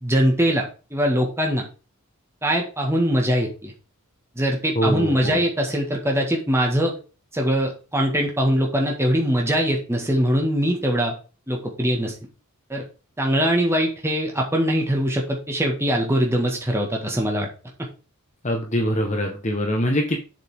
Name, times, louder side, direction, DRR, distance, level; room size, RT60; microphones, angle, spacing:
voice 1, 0.0-1.7 2.4-3.7 4.4-7.0 7.3-11.1 11.5-12.1 12.7-12.8 13.2-17.5, equal, 10° right, 0 dB, 1.8 m, -22 dB
voice 2, 4.7-5.4 18.4-20.2, equal, 35° left, 2 dB, 1.3 m, -23 dB
7.5 x 7.4 x 3.7 m, 0.34 s
head